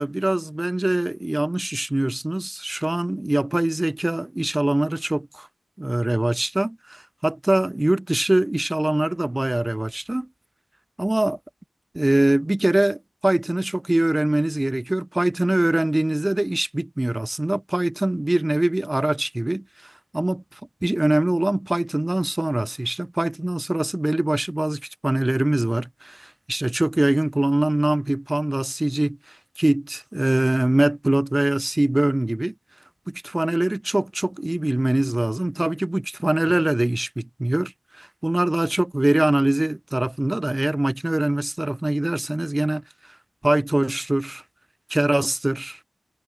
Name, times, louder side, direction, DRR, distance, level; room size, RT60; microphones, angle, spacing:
voice 1, 0.0-5.5 5.8-10.3 11.0-11.4 11.9-20.4 20.8-32.5 33.1-42.8 43.4-44.4 44.9-45.8, right 1 dB, 15° right, 2.1 m, -23 dB
wide cardioid pair, 110°, 0 cm